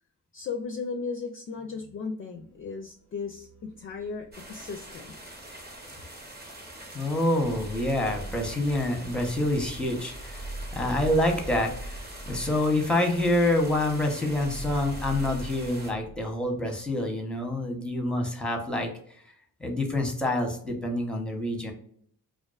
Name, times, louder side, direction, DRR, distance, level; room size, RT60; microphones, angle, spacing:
voice 1, 0.3-5.2, left 5 dB, 35° left, 4 dB, 0.4 m, -36 dB
sound 1, 2.4-2.8 3.1-17.1, right 1 dB, 85° right, 1.0 m, -42 dB
hail in turin, 4.3-15.9, right 1 dB, 25° right, 0.9 m, -44 dB
voice 2, 6.9-11.9 12.3-18.9 19.6-21.7, left 1 dB, 5° left, 2 dB, 0.7 m, -27 dB
2.3 x 2.3 x 2.3 m, 0.62 s
supercardioid pair, 50°, 38 cm